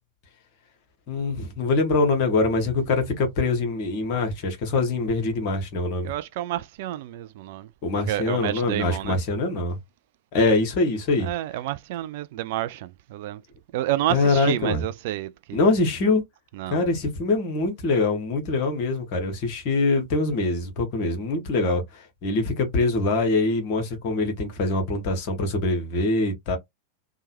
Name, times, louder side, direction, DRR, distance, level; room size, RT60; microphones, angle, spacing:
voice 1, 1.1-6.1 7.8-9.8 10.3-11.3 14.1-14.8 15.5-16.2 16.7-26.6, left 3 dB, 45° left, 1.2 m, -24 dB
voice 2, 6.0-7.7 8.1-9.2 11.2-13.4 13.7-15.6 16.5-16.8, right 14 dB, 50° right, 0.3 m, -29 dB
2.9 x 2.2 x 2.8 m
figure-of-eight pair, 90°, 0 cm